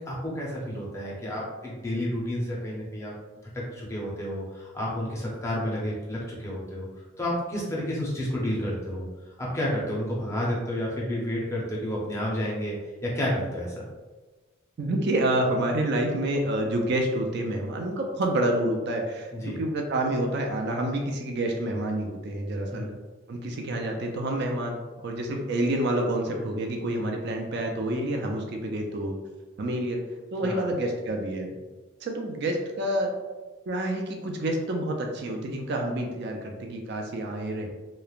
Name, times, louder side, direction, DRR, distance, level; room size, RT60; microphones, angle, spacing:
voice 1, 0.1-3.1 3.5-6.9 7.2-9.1 9.4-13.9 19.3-19.6 22.7-22.9 30.4-30.7, equal, 15° left, -4 dB, 0.5 m, -30 dB
voice 2, 14.8-22.9 23.3-29.2 29.6-30.0 30.3-31.6 32.0-33.1 33.7-37.7, right 1 dB, 50° right, 2 dB, 0.3 m, -28 dB
3.1 x 2.0 x 2.3 m, 1.3 s
head